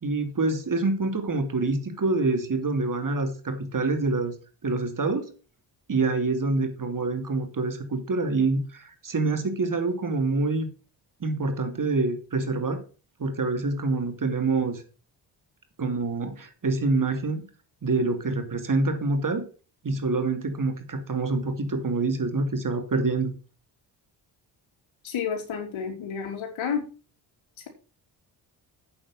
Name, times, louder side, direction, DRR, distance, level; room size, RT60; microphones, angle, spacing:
voice 1, 0.0-4.3 4.6-5.3 5.9-10.7 11.2-12.8 13.2-14.8 15.8-17.4 17.8-19.4 19.8-23.3, right 3 dB, 40° right, 7 dB, 2.8 m, -26 dB
voice 2, 25.0-26.8, left 7 dB, 75° left, 4 dB, 3.5 m, -30 dB
8.5 x 7.1 x 6.1 m, 0.35 s
supercardioid pair, 55°, 47 cm